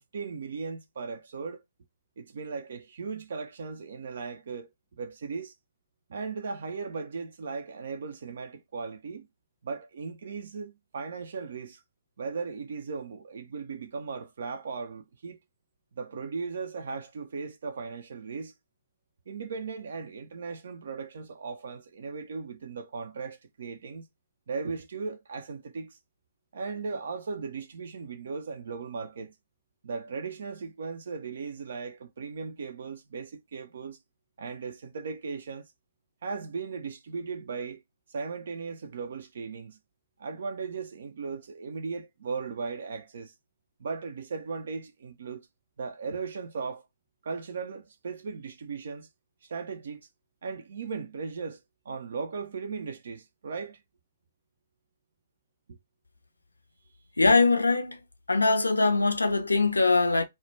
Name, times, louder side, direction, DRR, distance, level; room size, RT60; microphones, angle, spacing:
voice 1, 0.1-1.6 2.2-4.7 5.0-5.5 6.1-9.3 9.6-11.8 12.2-15.4 16.0-18.5 19.3-24.1 24.5-26.0 26.5-29.3 29.8-34.0 34.4-35.7 36.2-37.8 38.1-39.8 40.2-43.3 43.8-45.5 45.8-46.9 47.2-49.1 49.4-50.1 50.4-51.6 51.9-53.8 55.7-55.8, right 5 dB, 55° right, 0.4 m, -37 dB
voice 2, 57.2-58.0 58.3-60.2, left 3 dB, 80° left, 0.4 m, -22 dB
2.1 x 2.1 x 3.1 m
figure-of-eight pair, 125°, 0 cm